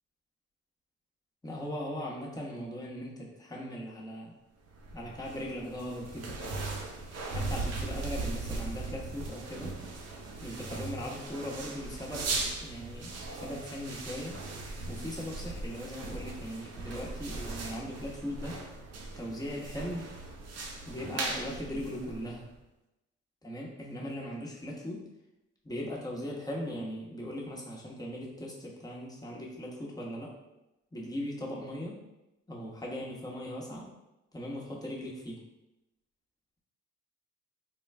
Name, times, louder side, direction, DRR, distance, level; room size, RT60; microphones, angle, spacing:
voice 1, 1.4-4.4 4.9-6.5 7.3-9.7 10.4-14.4 14.9-18.6 19.2-20.0 20.9-22.5 23.4-25.0 25.6-30.3 30.9-32.0 32.5-33.9 34.3-35.4, equal, 10° left, -3 dB, 1.1 m, -39 dB
sound 1, 4.7-22.6, right 3 dB, 50° right, 0.7 m, -38 dB
3.8 x 2.3 x 3.3 m, 0.95 s
supercardioid pair, 60°, 32 cm